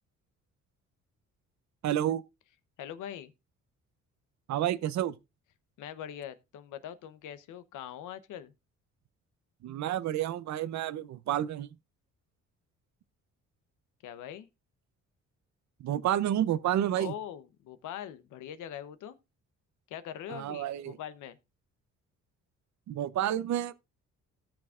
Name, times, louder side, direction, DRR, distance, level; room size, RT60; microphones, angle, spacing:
voice 1, 1.8-2.2 4.5-5.1 9.6-11.7 15.8-17.1 20.3-21.0 22.9-23.7, right 11 dB, 65° right, 0.7 m, -30 dB
voice 2, 2.8-3.3 5.8-8.5 14.0-14.5 16.9-19.2 19.9-21.4, left 10 dB, 80° left, 0.9 m, -42 dB
17.5 x 6.2 x 2.4 m
cardioid pair, 90°, 30 cm